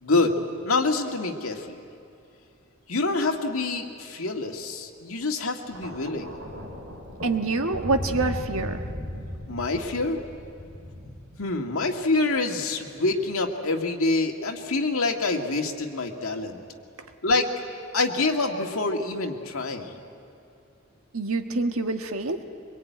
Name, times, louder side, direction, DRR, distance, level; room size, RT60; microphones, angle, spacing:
voice 1, 0.0-0.4 0.7-1.8 2.9-6.4 9.5-10.2 11.4-16.6 17.2-17.5 17.9-20.0, left 3 dB, 90° left, 3 dB, 2.0 m, -26 dB
Thunder, 5.6-12.0 13.0-13.2, left 1 dB, 50° right, 5.2 m, -37 dB
voice 2, 7.2-8.8 21.1-22.4, right 3 dB, 90° right, 6 dB, 1.6 m, -26 dB
24.0 x 22.5 x 9.4 m, 2.6 s
head